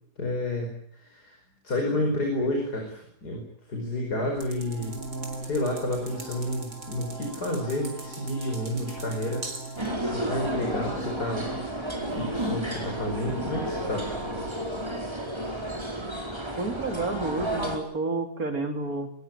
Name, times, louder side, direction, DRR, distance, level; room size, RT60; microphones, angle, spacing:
voice 1, 0.2-1.4 1.6-3.4 3.7-5.0 5.4-9.5 10.0-11.6 12.1-14.1, left 1 dB, 85° left, 2 dB, 5.5 m, -30 dB
sound 1, 4.4-9.9, right 3 dB, 85° right, 4.5 m, -44 dB
sound 2, 4.5-14.5, right 2 dB, 40° left, 7.2 m, -40 dB
sound 3, 9.8-17.8, right 1 dB, 15° right, 4.6 m, -32 dB
voice 2, 16.6-19.1, right 3 dB, 65° right, 5 dB, 3.6 m, -30 dB
24.0 x 20.0 x 9.0 m, 0.64 s
omnidirectional pair, 1.7 m